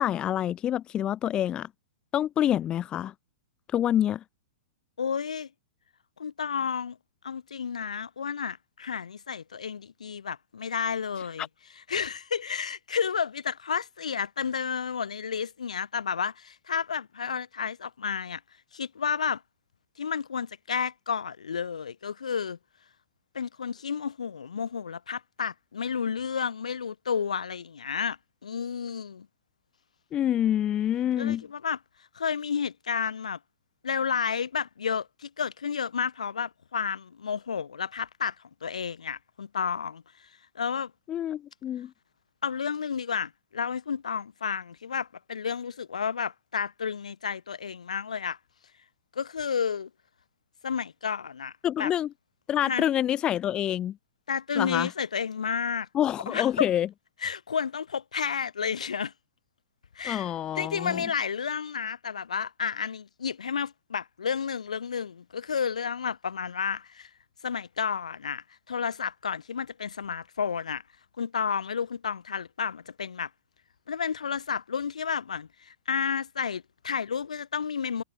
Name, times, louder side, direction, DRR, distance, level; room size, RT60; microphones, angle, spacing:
voice 1, 0.0-1.7 2.1-3.1 3.7-4.2 11.4-11.5 30.1-31.4 41.1-41.9 51.6-52.1 52.5-54.0 54.5-54.9 55.9-56.9 60.0-61.1, left 11 dB, 25° left, 0.5 m, -27 dB
voice 2, 5.0-5.5 6.2-7.0 7.2-11.5 11.9-18.4 18.7-19.4 20.0-22.6 23.3-29.3 31.2-31.8 32.1-33.4 33.8-38.3 38.6-40.0 40.5-40.9 42.4-48.4 49.1-49.9 50.6-51.5 51.8-51.9 52.6-52.8 54.3-55.9 56.3-56.7 57.2-59.1 60.0-67.1 67.4-70.8 71.2-73.3 73.9-78.0, left 6 dB, 75° left, 1.3 m, -31 dB
hypercardioid pair, 110°, 4 cm